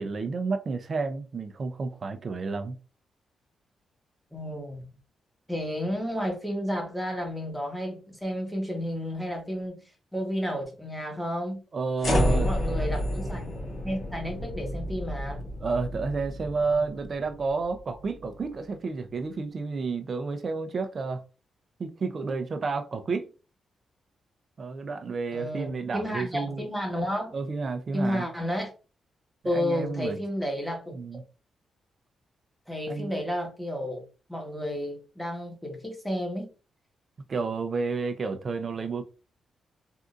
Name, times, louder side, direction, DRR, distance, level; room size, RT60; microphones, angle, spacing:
voice 1, 0.0-2.8 11.7-12.5 15.6-21.2 21.8-23.3 24.6-26.6 27.3-28.2 29.4-30.2 30.9-31.2 32.9-33.1 37.3-39.0, right 4 dB, 50° right, 0.6 m, -31 dB
voice 2, 4.3-4.9 5.5-9.8 10.1-11.6 12.2-13.5 13.8-15.5 25.3-27.3 27.9-28.7 29.4-31.0 32.7-34.0 34.3-36.5, equal, ahead, 1.3 m, -31 dB
sound 1, 12.0-18.3, equal, 50° left, 1.4 m, -30 dB
3.6 x 2.7 x 2.5 m
cardioid pair, 75°, 0 cm